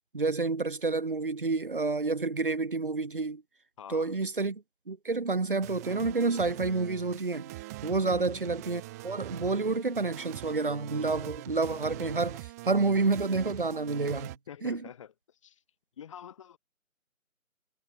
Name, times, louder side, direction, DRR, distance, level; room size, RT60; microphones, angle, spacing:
voice 1, 0.1-3.4 3.9-7.5 7.8-14.4 14.6-14.8, right 3 dB, 40° right, 0.6 m, -29 dB
voice 2, 3.8-4.1 8.0-8.4 14.5-15.6 16.0-16.6, left 9 dB, 20° left, 2.6 m, -46 dB
sound 1, 5.6-14.4, right 19 dB, 10° right, 2.4 m, -43 dB
figure-of-eight pair, 155°, 42 cm